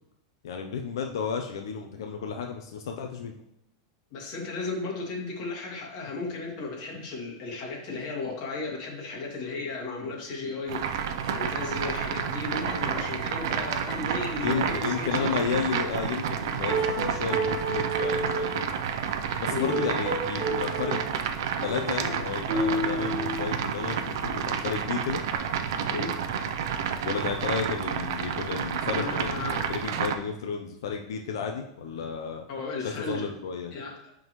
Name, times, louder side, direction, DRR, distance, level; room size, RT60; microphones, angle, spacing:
voice 1, 0.4-3.3 14.4-18.5 19.4-21.1 21.6-25.2 27.0-32.4 32.8-33.7, left 6 dB, 85° left, 3 dB, 0.7 m, -32 dB
voice 2, 4.1-15.3 19.5-19.8 25.9-26.2 28.9-29.7 32.5-33.2 33.7-33.9, left 3 dB, 40° left, -2 dB, 2.1 m, -35 dB
sound 1, 10.7-30.2, right 7 dB, 65° right, 0.6 m, -30 dB
sound 2, 12.7-15.5 16.2-16.3 16.7-18.6 19.5-21.1 21.6-24.0 24.4-24.8 25.3-25.4, right 2 dB, 5° right, 2.5 m, -32 dB
10.5 x 3.9 x 3.1 m, 0.84 s
supercardioid pair, 170°, 2 cm